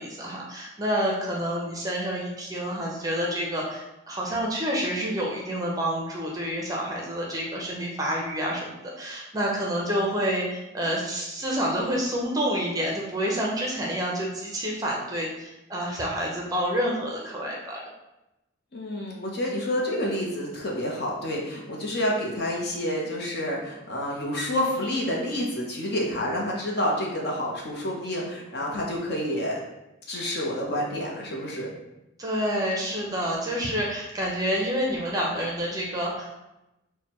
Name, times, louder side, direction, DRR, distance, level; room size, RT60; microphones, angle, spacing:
voice 1, 0.0-17.8 32.2-36.3, equal, 20° right, -2 dB, 0.6 m, -28 dB
voice 2, 18.7-29.6 30.1-31.7, left 1 dB, 50° left, -2 dB, 0.9 m, -29 dB
6.3 x 2.2 x 3.0 m, 0.95 s
head